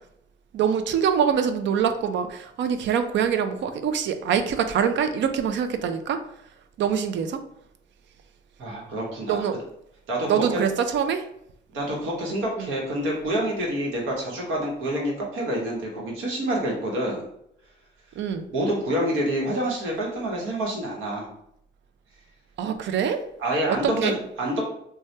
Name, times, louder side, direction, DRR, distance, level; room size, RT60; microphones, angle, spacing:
voice 1, 0.5-6.2 6.8-7.4 9.3-9.6 10.3-11.3 12.6-12.7 18.2-18.5 22.6-23.2 23.7-24.1, right 7 dB, 65° right, 8 dB, 0.4 m, -24 dB
voice 2, 8.6-9.4 10.1-10.6 11.7-17.2 18.5-21.3 23.4-24.6, right 1 dB, 85° right, -2 dB, 1.1 m, -27 dB
3.2 x 2.2 x 2.7 m, 0.74 s
cardioid pair, 90°, 20 cm